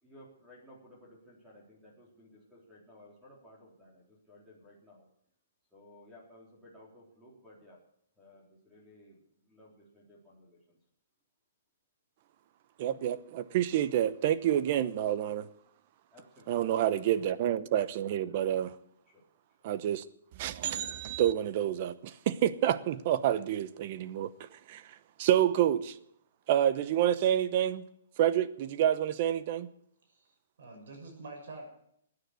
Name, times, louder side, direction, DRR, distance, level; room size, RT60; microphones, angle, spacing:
voice 1, 0.0-5.1 5.7-7.8 8.2-10.8 16.1-17.1 19.1-19.2 19.6-19.7, left 1 dB, 5° right, 3.9 m, -57 dB
voice 2, 12.8-15.5 16.5-18.7 19.6-20.0 20.4-25.9 26.5-27.9 28.2-29.7, right 11 dB, 35° right, 0.9 m, -28 dB
voice 3, 30.0-31.7, right 2 dB, 65° right, 6.5 m, -47 dB
16.5 x 9.9 x 8.1 m
hypercardioid pair, 165°, 0 cm